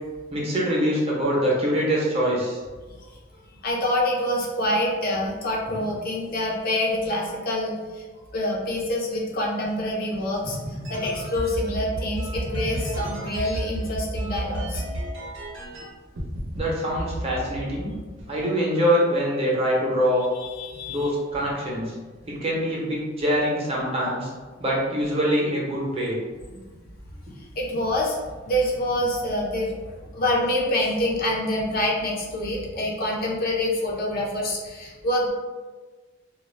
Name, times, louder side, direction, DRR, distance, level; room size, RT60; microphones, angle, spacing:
voice 1, 0.3-2.6 16.6-17.9 18.3-20.2 20.9-21.9 22.4-24.3 24.6-26.1, equal, 30° right, -5 dB, 0.7 m, -24 dB
voice 2, 3.6-8.0 8.3-14.8 20.4-21.1 26.7-26.8 27.3-28.2 28.5-29.8 30.1-35.3, left 1 dB, 50° left, -2 dB, 0.5 m, -26 dB
sound 1, 10.4-15.8 16.2-16.6 17.0-18.4, right 1 dB, 75° right, 0.7 m, -31 dB
2.3 x 2.0 x 3.1 m, 1.3 s
head